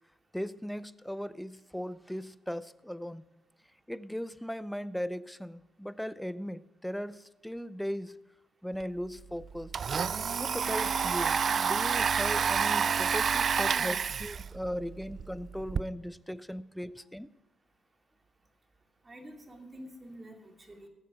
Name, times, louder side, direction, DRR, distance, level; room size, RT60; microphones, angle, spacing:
voice 1, 0.3-3.2 3.9-8.2 8.6-9.7 10.4-17.3, equal, ahead, 16 dB, 0.5 m, -38 dB
Domestic sounds home sounds, 8.8-8.9 9.2-15.8, right 6 dB, 45° right, 0.3 m, -29 dB
voice 2, 19.0-20.9, right 1 dB, 25° right, 4 dB, 2.6 m, -45 dB
16.0 x 7.5 x 6.1 m, 1.1 s
cardioid pair, 90°, 0 cm